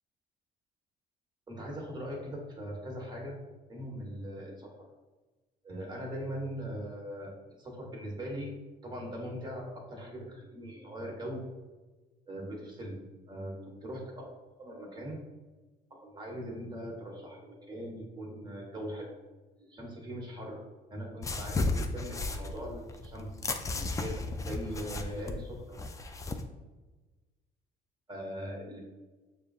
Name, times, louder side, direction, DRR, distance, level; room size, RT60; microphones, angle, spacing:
voice 1, 1.5-3.4 3.7-4.7 5.6-8.5 8.8-11.5 12.3-14.2 14.6-15.2 15.9-19.2 19.6-20.6 20.9-23.3 24.0-25.8 28.1-28.8, equal, 25° right, -1 dB, 1.2 m, -40 dB
sound 1, 21.2-26.4, left 2 dB, 20° left, 0.3 m, -34 dB
6.6 x 2.4 x 2.4 m, 1.2 s
cardioid pair, 110°, 17 cm